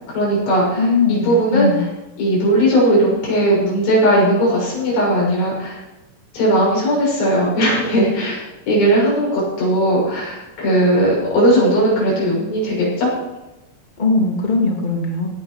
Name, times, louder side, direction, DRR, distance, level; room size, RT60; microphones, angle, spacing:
voice 1, 0.0-1.7 2.2-5.8 6.3-8.4 8.7-13.1, right 1 dB, 60° left, -5 dB, 8.5 m, -17 dB
voice 2, 0.8-1.9 14.0-15.3, left 3 dB, 40° left, -1 dB, 0.6 m, -19 dB
18.5 x 8.6 x 5.6 m, 1.0 s
omnidirectional pair, 5.5 m